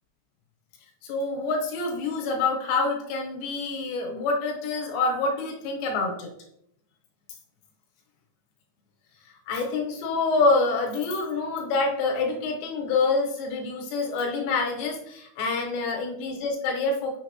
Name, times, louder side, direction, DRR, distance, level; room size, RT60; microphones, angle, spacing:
voice 1, 1.0-6.3 9.5-17.2, left 3 dB, 75° left, 1 dB, 3.0 m, -26 dB
6.9 x 6.7 x 3.0 m, 0.75 s
omnidirectional pair, 5.8 m